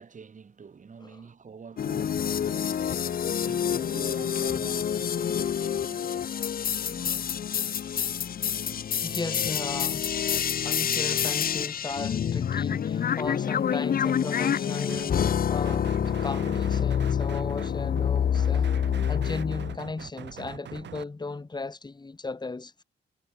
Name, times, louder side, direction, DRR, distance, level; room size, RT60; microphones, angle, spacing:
voice 1, 0.0-6.4 6.9-7.4, right 5 dB, 40° right, 4.0 m, -46 dB
sound 1, 1.8-19.8, left 8 dB, 50° left, 0.9 m, -27 dB
voice 2, 9.0-10.1 10.6-15.2 15.5-18.7 19.1-22.8, left 3 dB, 20° left, 2.5 m, -36 dB
sound 2, 14.9-15.4 15.6-21.0, right 10 dB, 65° right, 1.5 m, -43 dB
cardioid pair, 75°, 19 cm